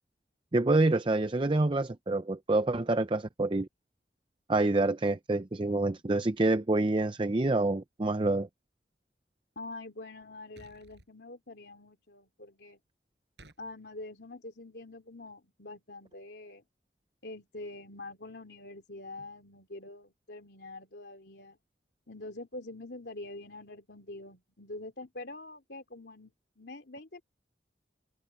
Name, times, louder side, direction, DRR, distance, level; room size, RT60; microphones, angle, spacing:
voice 1, 0.5-3.7 4.5-8.5, right 2 dB, 30° right, 0.6 m, -27 dB
voice 2, 9.6-12.8 13.6-16.6 17.2-21.6 22.1-27.2, left 2 dB, 70° left, 3.1 m, -45 dB
sound 1, 10.6-11.1 13.4-13.6, right 2 dB, 80° right, 7.7 m, -54 dB
open air
head